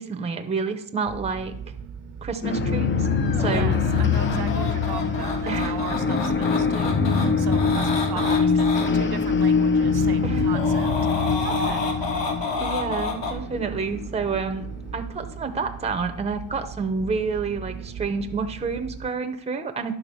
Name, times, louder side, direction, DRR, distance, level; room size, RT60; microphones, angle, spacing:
voice 1, 0.0-1.5 2.2-3.1 3.4-3.8 4.1-4.3 5.5-5.8 8.1-8.6 10.2-10.5 12.6-14.7 14.9-19.9, right 4 dB, 15° right, 6 dB, 0.7 m, -29 dB
sound 1, 1.0-19.1, right 6 dB, 85° right, 1.0 m, -38 dB
sound 2, 2.4-14.9, left 5 dB, 25° left, 0.5 m, -23 dB
sound 3, 3.0-8.9 10.3-13.3, left 4 dB, 60° left, 1.7 m, -30 dB
voice 2, 3.4-11.9, right 7 dB, 50° right, 10 dB, 0.8 m, -38 dB
10.5 x 3.9 x 6.8 m, 0.69 s
cardioid pair, 135°, 49 cm